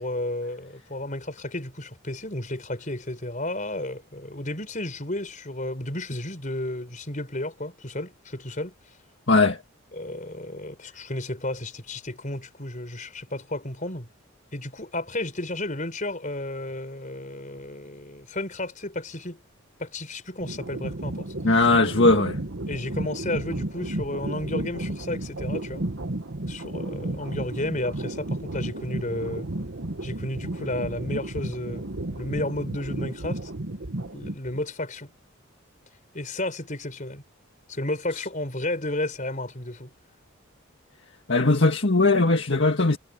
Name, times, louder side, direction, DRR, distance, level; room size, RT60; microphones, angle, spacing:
voice 1, 0.0-8.7 9.9-14.1 14.5-19.4 19.8-21.3 21.6-21.7 22.7-25.8 26.5-29.5 30.0-33.5 34.1-35.1 36.1-37.2 37.7-39.9, left 1 dB, 35° left, 4.9 m, -32 dB
voice 2, 9.3-9.6 21.4-22.4 41.3-43.0, left 3 dB, 55° left, 1.9 m, -19 dB
sound 1, 20.4-34.6, right 1 dB, 65° right, 1.5 m, -33 dB
head